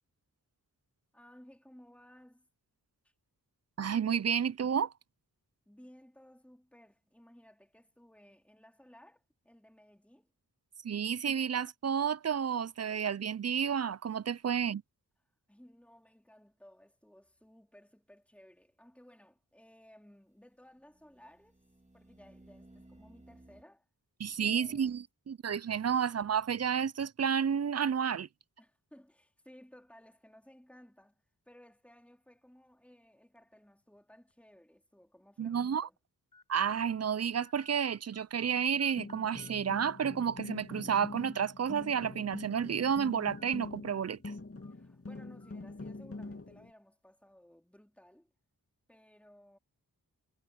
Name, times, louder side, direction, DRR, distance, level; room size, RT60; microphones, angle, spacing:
voice 1, 1.1-2.5 3.0-3.1 5.7-10.3 15.5-21.6 21.9-23.9 24.4-25.0 28.6-36.0 44.7-48.3 48.9-49.6, equal, 5° left, 3.7 m, -59 dB
voice 2, 3.8-4.9 10.8-14.8 24.2-28.3 35.4-35.9 36.5-44.2, right 7 dB, 40° right, 0.5 m, -31 dB
sound 1, 17.2-17.3 20.7-23.6, right 1 dB, 20° right, 2.0 m, -59 dB
sound 2, 33.4-33.6 34.3-34.4 35.5-35.6 36.3-36.4 36.9-37.0 37.4-38.5 38.8-39.5 39.8-39.9 41.2-41.5 41.9-42.0 43.4-43.6 44.0-44.2 44.6-44.7 45.4-45.5, left 3 dB, 55° left, 8.0 m, -61 dB
sound 3, 38.5-46.7, left 2 dB, 35° left, 2.6 m, -45 dB
wide cardioid pair, 50°, 38 cm